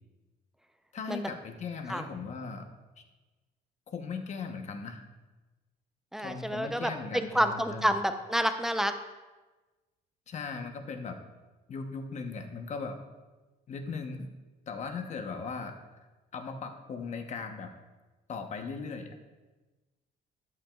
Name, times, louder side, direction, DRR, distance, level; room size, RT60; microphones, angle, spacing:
voice 1, 0.9-2.7 3.9-5.0 6.2-8.0 10.3-11.2 11.7-13.0 13.7-14.3 14.7-16.0 16.3-17.7 18.3-19.3, left 4 dB, 45° left, 6 dB, 1.0 m, -38 dB
voice 2, 6.1-8.9, equal, 5° right, 7 dB, 0.6 m, -29 dB
12.5 x 9.0 x 2.4 m, 1.2 s
cardioid pair, 110°, 17 cm